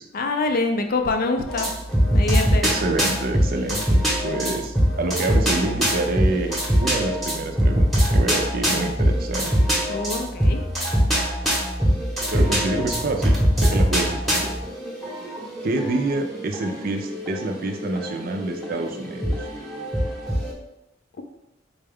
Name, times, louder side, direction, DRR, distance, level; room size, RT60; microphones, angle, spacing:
voice 1, 0.1-1.7 2.1-2.7 9.9-10.6, left 3 dB, 50° left, 5 dB, 0.4 m, -25 dB
sound 1, 1.5-20.5, equal, ahead, 0.9 m, -23 dB
voice 2, 2.6-9.5 12.3-14.5 15.6-19.3, right 2 dB, 50° right, 3 dB, 0.5 m, -27 dB
sound 2, 12.2-14.4, equal, 35° right, 0.8 m, -38 dB
4.1 x 2.3 x 3.4 m, 0.89 s
head